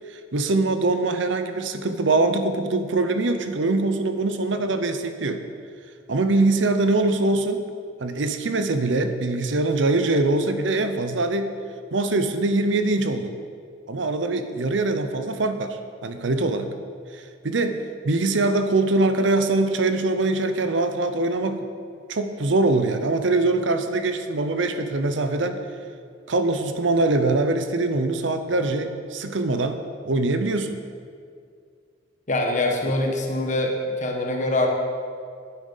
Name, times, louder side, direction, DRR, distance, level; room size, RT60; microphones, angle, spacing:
voice 1, 0.1-5.4 6.1-7.6 8.0-11.5 11.9-13.3 13.9-16.7 17.1-21.7 22.1-25.6 26.3-30.8, right 2 dB, 75° right, 9 dB, 0.7 m, -23 dB
voice 2, 32.3-34.7, left 2 dB, 40° left, 1 dB, 1.4 m, -24 dB
9.2 x 8.6 x 5.6 m, 2.3 s
head